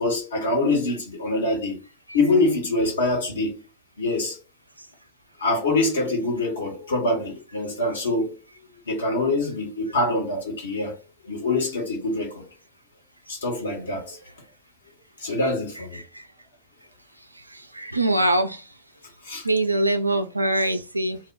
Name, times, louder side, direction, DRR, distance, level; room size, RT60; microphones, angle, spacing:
voice 1, 0.0-1.8 2.1-3.5 4.0-4.4 5.4-8.3 8.9-10.9 11.2-12.5 13.3-14.2 15.2-16.0 19.2-19.4, left 2 dB, 65° left, 1.2 m, -24 dB
voice 2, 17.5-18.6 19.4-21.2, right 1 dB, 85° right, 0.3 m, -23 dB
2.3 x 2.1 x 3.8 m
figure-of-eight pair, 90°, 0 cm